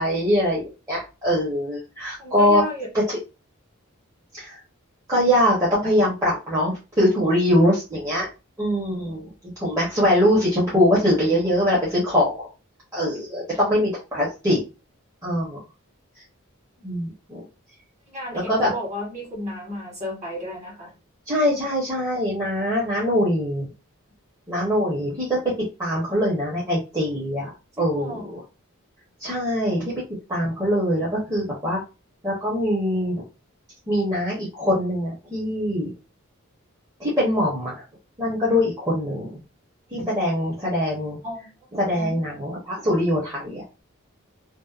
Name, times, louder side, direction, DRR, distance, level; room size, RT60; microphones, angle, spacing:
voice 1, 0.0-2.6 2.9-3.2 4.3-4.6 5.1-8.3 8.6-9.3 9.6-12.5 12.9-14.6 15.2-15.6 16.8-17.4 18.5-18.7 21.3-23.7 24.5-25.4 25.8-27.5 27.8-28.4 29.2-29.9 30.3-31.8 32.2-33.2 33.9-35.9 37.0-37.7 38.2-39.4 39.9-41.2 41.7-43.6, equal, 15° right, -7 dB, 0.7 m, -22 dB
voice 2, 2.2-2.9 18.1-20.9 27.8-28.3 41.2-41.5 42.0-42.2, equal, 35° right, -2 dB, 1.3 m, -33 dB
2.7 x 2.1 x 2.3 m, 0.30 s
head